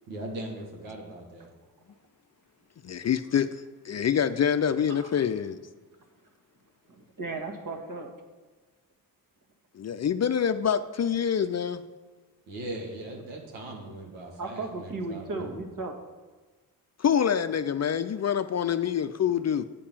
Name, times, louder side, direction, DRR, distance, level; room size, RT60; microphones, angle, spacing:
voice 1, 0.1-1.5 12.5-15.6, right 1 dB, 85° right, 0 dB, 1.8 m, -39 dB
voice 2, 2.9-3.5 3.8-5.6 9.7-11.8 17.0-19.6, left 8 dB, 35° left, 11 dB, 0.5 m, -26 dB
voice 3, 6.9-8.1 14.4-16.0, right 3 dB, 45° right, 3 dB, 1.8 m, -35 dB
8.4 x 4.9 x 7.3 m, 1.3 s
hypercardioid pair, 45°, 46 cm